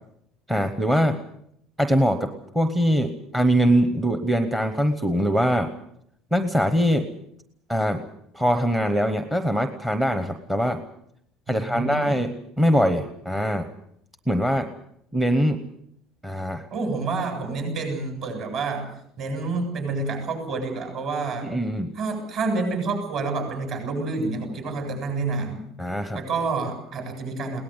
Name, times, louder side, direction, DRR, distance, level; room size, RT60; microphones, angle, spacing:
voice 1, 0.5-1.2 1.8-5.7 6.3-7.1 7.7-8.0 8.3-10.8 11.5-13.7 14.3-14.7 15.1-15.6 16.2-16.7 21.4-21.9 25.8-26.2, equal, 5° right, 8 dB, 1.0 m, -22 dB
voice 2, 11.5-12.2 16.7-18.9 19.2-21.5 21.9-25.6 26.1-27.6, right 3 dB, 40° right, 4 dB, 7.7 m, -28 dB
22.0 x 18.5 x 8.0 m, 0.73 s
cardioid pair, 175°, 0 cm